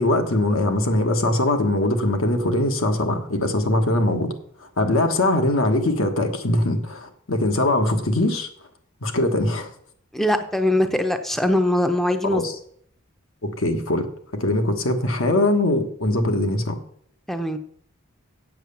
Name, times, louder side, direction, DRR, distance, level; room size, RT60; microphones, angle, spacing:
voice 1, 0.0-4.3 4.8-8.5 9.0-9.7 12.2-12.5 13.4-14.1 14.3-16.8, left 1 dB, 75° left, 5 dB, 1.5 m, -21 dB
voice 2, 10.1-12.4 17.3-17.6, left 1 dB, ahead, 7 dB, 0.7 m, -21 dB
7.8 x 7.7 x 7.0 m, 0.64 s
head